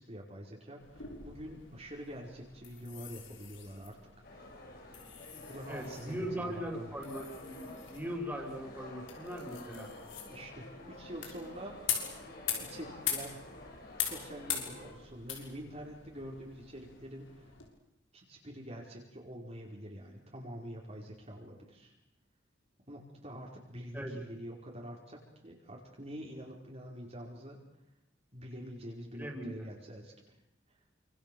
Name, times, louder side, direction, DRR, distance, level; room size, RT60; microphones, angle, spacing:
voice 1, 0.1-4.0 4.3-4.5 5.4-6.9 10.3-13.4 13.9-17.5 18.1-21.9 22.9-27.6 28.3-30.1, equal, 35° right, -1 dB, 5.0 m, -46 dB
sound 1, 0.8-17.7, left 8 dB, 80° left, 6.7 m, -43 dB
sound 2, 4.2-14.9, left 1 dB, 50° left, 7.7 m, -50 dB
voice 2, 5.7-9.9 23.9-24.1 29.1-29.6, equal, 10° right, 1 dB, 6.2 m, -40 dB
29.0 x 26.5 x 7.1 m, 0.79 s
head